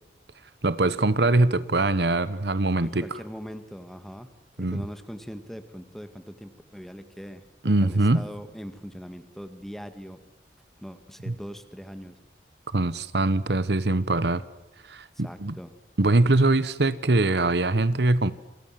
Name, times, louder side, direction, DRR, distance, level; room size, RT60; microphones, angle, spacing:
voice 1, 0.6-3.2 4.6-4.8 7.6-8.2 11.3-11.4 12.7-14.4 14.9-15.6 16.0-18.3, right 2 dB, 65° right, 1.1 m, -22 dB
voice 2, 2.8-4.3 4.6-10.2 10.8-12.2 15.2-15.7, equal, ahead, 1.9 m, -41 dB
28.0 x 27.0 x 7.6 m
head